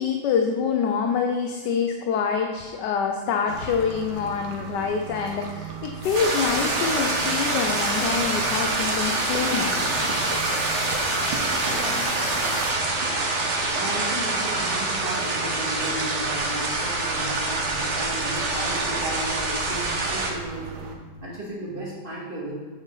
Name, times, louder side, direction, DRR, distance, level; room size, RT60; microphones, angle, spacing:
voice 1, 0.0-9.9, left 6 dB, 85° left, 4 dB, 1.3 m, -26 dB
sound 1, 3.5-21.0, right 5 dB, 75° right, 1.5 m, -37 dB
sound 2, 6.0-12.7, left 2 dB, 45° left, 1.7 m, -34 dB
sound 3, 6.1-20.3, right 2 dB, 50° right, 1.3 m, -26 dB
voice 2, 13.7-20.7 21.2-22.5, right 1 dB, 30° right, -6 dB, 2.4 m, -34 dB
7.9 x 7.0 x 4.0 m, 1.4 s
omnidirectional pair, 1.8 m